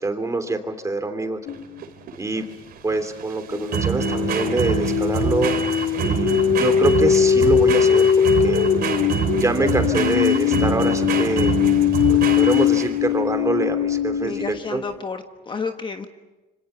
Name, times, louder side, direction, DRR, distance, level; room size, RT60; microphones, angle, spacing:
voice 1, 0.0-1.4 2.2-2.4 2.8-5.5 6.0-8.6 9.4-11.5 12.1-14.8, right 2 dB, 20° right, 7 dB, 3.1 m, -25 dB
sound 1, 1.5-1.6 3.5-14.6, left 9 dB, 70° left, 1.6 m, -20 dB
sound 2, 1.5-13.1, right 7 dB, 65° right, 3.2 m, -26 dB
voice 2, 14.2-16.1, left 5 dB, 30° left, 6 dB, 1.4 m, -31 dB
27.0 x 25.5 x 7.1 m, 1.1 s
cardioid pair, 110°, 17 cm